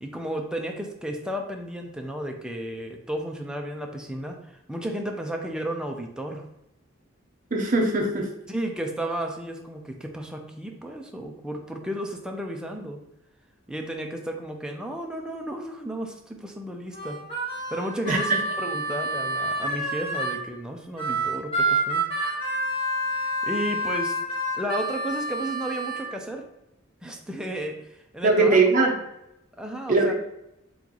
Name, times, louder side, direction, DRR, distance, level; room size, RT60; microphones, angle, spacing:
voice 1, 0.0-6.4 8.5-13.0 13.7-17.2 17.7-22.0 23.1-24.2 24.6-26.5 27.0-28.6 29.6-30.1, right 1 dB, 5° right, 2 dB, 0.5 m, -33 dB
voice 2, 7.5-8.3 18.1-18.4 28.2-28.9 29.9-30.1, right 3 dB, 40° right, 1 dB, 0.7 m, -20 dB
Harmonica, 16.9-20.4 21.0-26.1, right 1 dB, 25° left, 1.1 m, -28 dB
3.6 x 3.0 x 3.9 m, 0.84 s
head